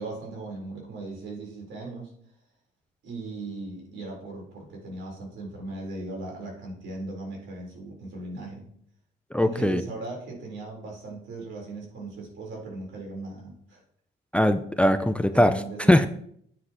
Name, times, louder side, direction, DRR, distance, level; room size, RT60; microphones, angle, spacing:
voice 1, 0.0-2.1 3.0-8.7 9.4-13.8 15.3-16.1, right 2 dB, 75° right, -1 dB, 4.0 m, -38 dB
voice 2, 9.3-9.8 14.3-15.5 15.9-16.1, left 1 dB, 5° left, 10 dB, 0.5 m, -20 dB
9.6 x 9.6 x 3.0 m, 0.66 s
cardioid pair, 90°, 20 cm